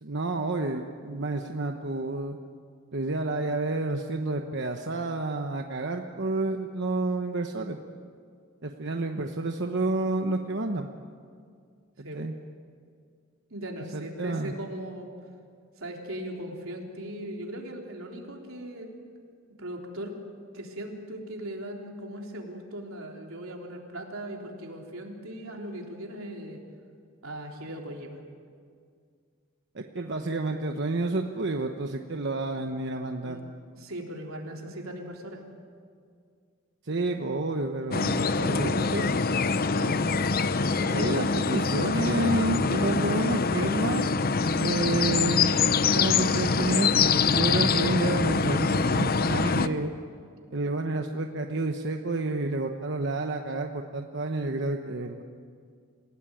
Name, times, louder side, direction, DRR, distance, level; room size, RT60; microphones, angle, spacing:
voice 1, 0.0-2.4 2.9-7.8 8.6-10.9 12.0-12.3 13.9-14.5 29.7-33.4 36.8-39.1 40.9-44.1 44.6-45.6 45.9-49.9 50.5-55.2, right 2 dB, 60° right, 4 dB, 1.1 m, -30 dB
voice 2, 13.5-15.1 15.8-19.0 19.6-20.1 20.5-26.6 27.2-28.2 33.2-33.4 33.8-35.4 38.4-39.1 39.8-40.0, right 1 dB, 90° right, 1 dB, 3.7 m, -38 dB
sound 1, 37.9-49.7, left 4 dB, 45° left, 0.7 m, -24 dB
28.0 x 17.5 x 9.2 m, 2.2 s
head